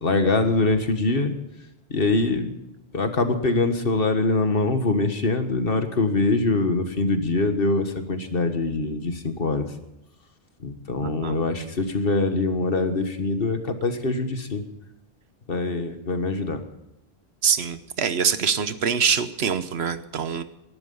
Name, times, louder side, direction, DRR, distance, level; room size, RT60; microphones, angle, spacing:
voice 1, 0.0-1.3 1.9-2.5 2.9-9.7 10.6-14.6 15.5-16.6, left 3 dB, 65° left, 7 dB, 1.7 m, -23 dB
voice 2, 11.0-11.4 17.4-20.4, right 7 dB, 80° right, 12 dB, 1.2 m, -24 dB
19.5 x 12.0 x 5.5 m, 0.91 s
omnidirectional pair, 1.1 m